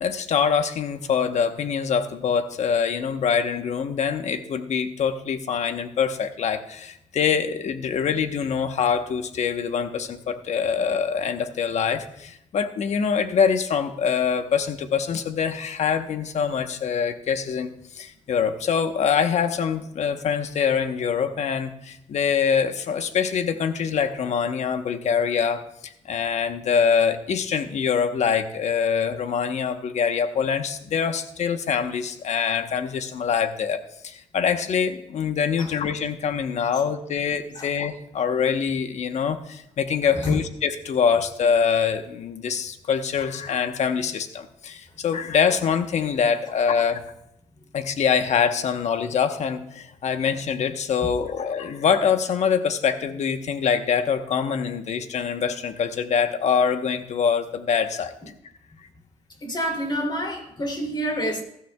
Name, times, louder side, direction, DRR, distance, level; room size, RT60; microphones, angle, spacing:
voice 1, 0.0-47.0 47.7-58.1, left 6 dB, 60° left, 8 dB, 1.1 m, -24 dB
voice 2, 59.4-61.4, equal, 35° left, 2 dB, 3.0 m, -28 dB
16.0 x 12.5 x 2.3 m, 0.81 s
cardioid pair, 70°, 13 cm